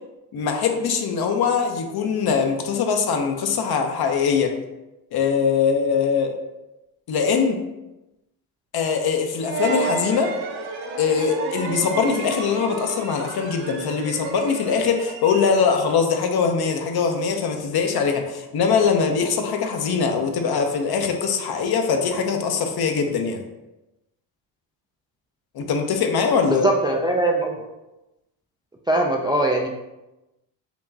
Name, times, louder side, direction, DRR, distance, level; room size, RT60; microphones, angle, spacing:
voice 1, 0.3-4.5 5.1-6.4 7.1-7.6 8.7-10.3 11.0-23.4 25.5-26.7, left 6 dB, 50° left, 4 dB, 0.7 m, -22 dB
sound 1, 9.4-15.9, right 4 dB, 85° right, 0.7 m, -31 dB
voice 2, 26.5-27.5 28.9-29.7, right 1 dB, 10° right, 0 dB, 0.3 m, -21 dB
4.5 x 2.9 x 2.7 m, 1.0 s
supercardioid pair, 65°, 48 cm